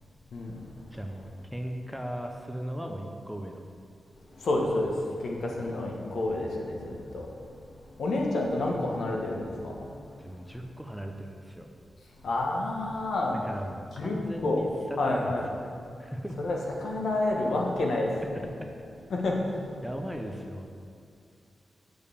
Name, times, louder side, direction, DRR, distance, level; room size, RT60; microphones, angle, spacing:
voice 1, 0.9-3.6 10.2-11.7 13.4-15.7 16.0-16.4 18.3-18.7 19.8-20.7, equal, ahead, 3 dB, 0.5 m, -37 dB
voice 2, 4.3-4.9 5.2-7.3 8.0-9.9 12.2-13.4 14.0-14.2 14.4-14.6 15.0-15.4 16.4-18.4 19.1-19.6, left 2 dB, 70° left, -1 dB, 1.3 m, -29 dB
6.7 x 5.4 x 6.9 m, 2.4 s
wide cardioid pair, 165°, 0 cm